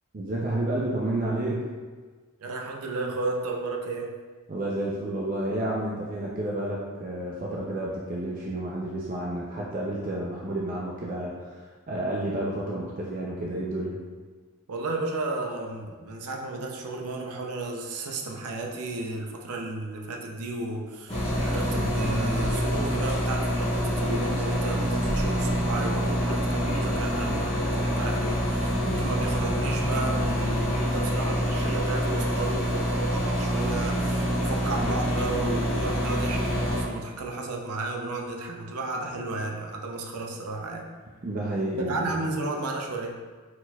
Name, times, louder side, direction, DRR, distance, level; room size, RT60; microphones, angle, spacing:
voice 1, 0.1-1.7 4.5-11.5 11.9-14.0 28.7-29.0 41.2-42.1, right 1 dB, 35° right, -4 dB, 0.4 m, -30 dB
voice 2, 2.4-4.1 14.7-40.9 41.9-43.2, right 2 dB, 90° right, 1 dB, 0.6 m, -33 dB
sound 1, 21.1-36.8, equal, 25° left, 0.8 m, -26 dB
4.3 x 4.2 x 2.3 m, 1.4 s
head